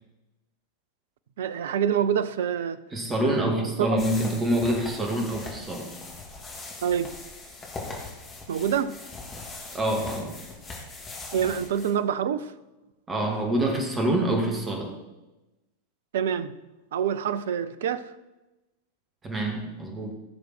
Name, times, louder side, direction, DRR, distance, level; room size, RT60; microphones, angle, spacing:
voice 1, 1.4-2.8 3.2-3.5 3.8-3.9 6.8-7.1 8.5-9.0 11.3-12.5 16.1-16.5 16.9-18.0, right 8 dB, 60° right, 15 dB, 0.6 m, -26 dB
voice 2, 2.9-5.9 9.7-10.4 13.1-15.0 19.2-20.1, right 1 dB, 20° right, 2 dB, 2.4 m, -26 dB
sound 1, 4.0-11.9, left 3 dB, 20° left, 2.8 m, -40 dB
16.5 x 6.7 x 4.5 m, 1.0 s
figure-of-eight pair, 90°, 0 cm